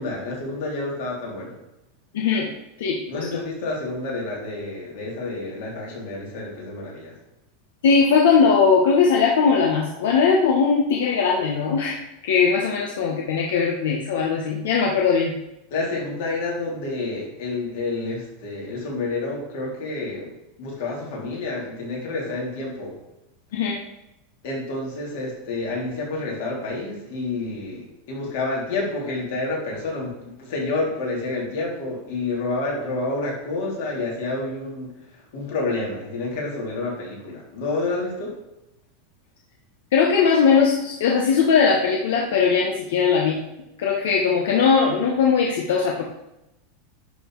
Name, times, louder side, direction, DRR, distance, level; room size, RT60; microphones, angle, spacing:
voice 1, 0.0-1.6 3.1-7.2 15.7-23.0 24.4-38.4, left 2 dB, 55° left, -3 dB, 3.2 m, -29 dB
voice 2, 2.1-2.5 2.8-3.0 3.3-3.4 7.8-15.3 23.5-23.8 39.9-43.4 43.8-46.0, left 5 dB, 80° left, -1 dB, 1.2 m, -19 dB
11.0 x 4.1 x 4.8 m, 0.90 s
supercardioid pair, 170°, 0 cm